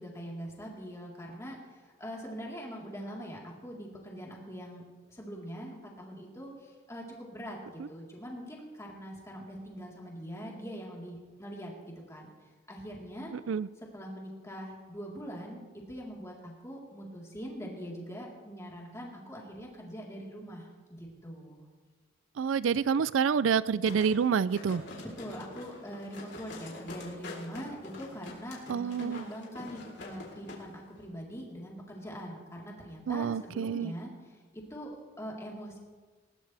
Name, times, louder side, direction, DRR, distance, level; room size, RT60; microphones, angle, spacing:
voice 1, 0.0-12.3 12.7-13.3 13.9-15.6 15.9-21.7 25.0-35.8, equal, 15° left, -3 dB, 3.8 m, -43 dB
voice 2, 22.4-24.8 28.7-29.2 33.1-33.9, right 6 dB, 80° right, 18 dB, 0.4 m, -28 dB
sound 1, 23.9-30.6 30.9-31.0, left 2 dB, 60° left, 3.9 m, -45 dB
20.5 x 20.0 x 3.4 m, 1.4 s
head